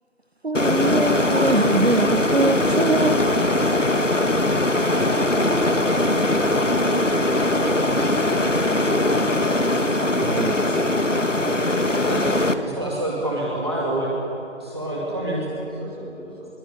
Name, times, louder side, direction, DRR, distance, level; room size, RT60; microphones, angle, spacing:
voice 1, 0.4-3.2 10.2-10.5, right 2 dB, 55° right, 11 dB, 1.0 m, -22 dB
sound 1, 0.5-12.5, left 1 dB, 80° left, 2.0 m, -21 dB
voice 2, 7.8-8.8 11.9-12.7 14.9-16.5, right 1 dB, 10° left, -11 dB, 5.9 m, -37 dB
voice 3, 12.6-14.1 14.6-15.4, right 1 dB, 20° right, -5 dB, 2.4 m, -27 dB
25.5 x 21.5 x 10.0 m, 2.7 s
figure-of-eight pair, 170°, 37 cm